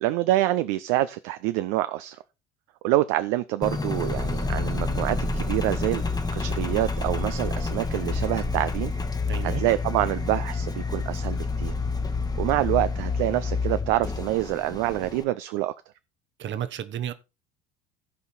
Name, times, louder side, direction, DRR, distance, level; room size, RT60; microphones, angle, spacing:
voice 1, 0.0-2.2 2.8-6.0 6.3-8.9 9.4-11.7 12.4-15.7, right 15 dB, 50° right, 0.6 m, -26 dB
Engine, 3.6-15.2, left 3 dB, 10° left, 1.2 m, -28 dB
voice 2, 9.3-9.6 16.4-17.1, right 10 dB, 30° right, 1.1 m, -32 dB
15.0 x 5.5 x 4.3 m
figure-of-eight pair, 65°, 35 cm